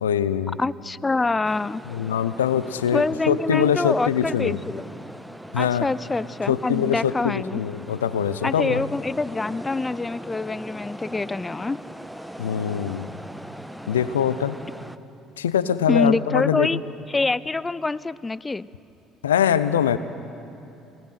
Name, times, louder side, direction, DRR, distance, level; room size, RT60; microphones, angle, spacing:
voice 1, 0.0-0.6 1.9-4.6 5.5-5.9 6.5-8.8 12.4-13.1 13.9-14.6 15.4-16.8 19.2-20.0, left 8 dB, 85° left, 14 dB, 0.6 m, -23 dB
voice 2, 0.6-1.8 2.9-4.8 5.6-7.6 8.4-11.8 15.9-16.8 17.1-18.7, left 3 dB, 20° left, 20 dB, 0.5 m, -25 dB
sound 1, 1.4-15.0, equal, ahead, 0.9 m, -40 dB
27.0 x 18.5 x 5.8 m, 2.8 s
figure-of-eight pair, 55°, 0 cm